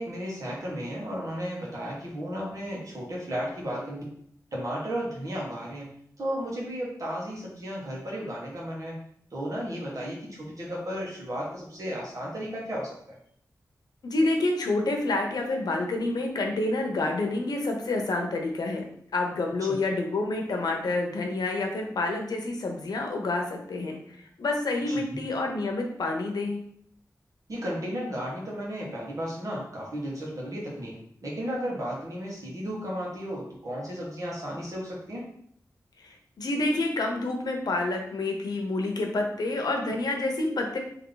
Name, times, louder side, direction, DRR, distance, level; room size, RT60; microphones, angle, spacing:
voice 1, 0.0-4.0 4.5-13.2 24.9-25.2 27.5-35.3, equal, 55° right, -4 dB, 1.5 m, -34 dB
voice 2, 14.0-18.8 19.1-24.0 24.4-26.6 36.0-40.8, left 2 dB, 90° left, 2 dB, 0.8 m, -28 dB
3.6 x 3.1 x 3.9 m, 0.66 s
wide cardioid pair, 110°, 7 cm